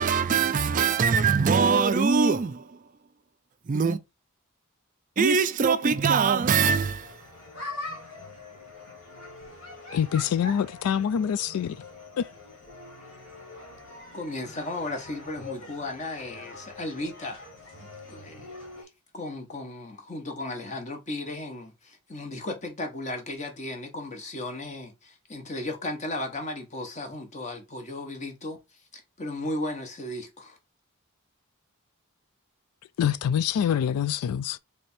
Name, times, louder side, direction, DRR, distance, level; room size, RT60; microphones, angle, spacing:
voice 1, 0.0-2.8 3.7-4.0 5.2-7.2, right 5 dB, 35° right, 0.4 m, -22 dB
sound 1, 7.0-18.8, left 2 dB, 65° left, 1.7 m, -43 dB
voice 2, 9.9-11.8 12.2-12.3 33.0-34.6, left 8 dB, 80° left, 0.3 m, -25 dB
voice 3, 14.1-17.5 18.1-18.5 19.1-28.6 28.9-30.6, left 2 dB, 30° left, 1.0 m, -35 dB
3.4 x 3.3 x 4.2 m
head